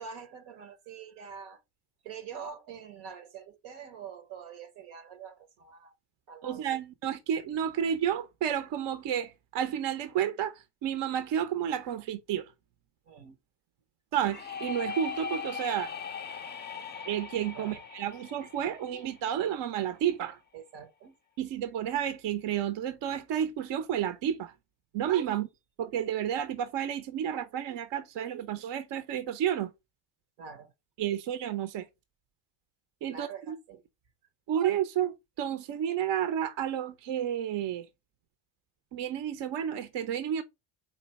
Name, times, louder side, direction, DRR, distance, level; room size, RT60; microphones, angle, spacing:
voice 1, 0.0-1.6 2.0-5.9 6.3-6.7 13.1-13.4 17.5-17.8 20.5-21.1 25.3-25.4 30.4-30.7 33.1-33.8, right 6 dB, 80° right, 1.0 m, -45 dB
voice 2, 6.4-12.5 14.1-15.9 17.1-20.4 21.4-24.5 24.9-25.5 25.8-29.7 31.0-31.9 33.0-33.6 34.5-37.9 38.9-40.4, right 9 dB, 60° right, 0.7 m, -31 dB
sound 1, 14.3-20.0, left 6 dB, 20° left, 0.5 m, -40 dB
4.3 x 2.7 x 4.1 m
supercardioid pair, 65°, 49 cm